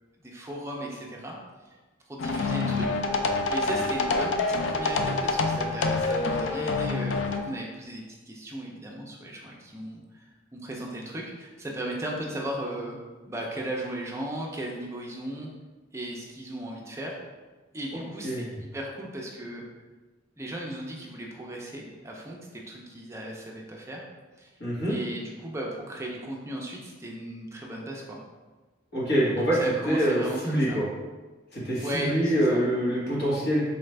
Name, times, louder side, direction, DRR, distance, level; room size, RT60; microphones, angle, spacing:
voice 1, 0.2-1.4 2.1-2.9 3.5-13.0 13.3-15.5 15.9-17.2 17.7-19.6 20.4-24.0 24.4-24.5 24.9-28.2 29.4-30.8 31.8-32.6, right 1 dB, 15° right, -2 dB, 0.5 m, -36 dB
sound 1, 2.2-7.4, left 3 dB, 80° left, 0.4 m, -26 dB
voice 2, 17.9-18.5 24.6-24.9 28.9-29.6 29.9-30.8 31.5-33.6, equal, 55° left, -7 dB, 1.2 m, -25 dB
4.1 x 2.5 x 3.2 m, 1.3 s
head